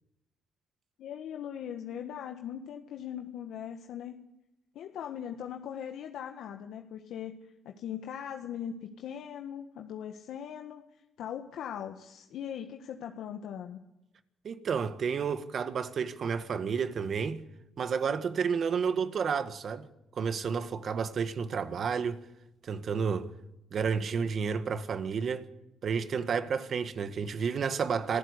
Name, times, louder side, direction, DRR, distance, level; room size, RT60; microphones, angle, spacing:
voice 1, 1.0-4.2 4.7-7.3 7.6-10.8 11.2-13.8, left 9 dB, 75° left, 1.5 m, -40 dB
voice 2, 14.4-17.4 17.8-19.9 20.1-22.2 22.6-23.3 23.7-25.5 25.8-28.2, right 6 dB, 55° right, 1.6 m, -31 dB
26.5 x 15.0 x 8.3 m
supercardioid pair, 75°, 0 cm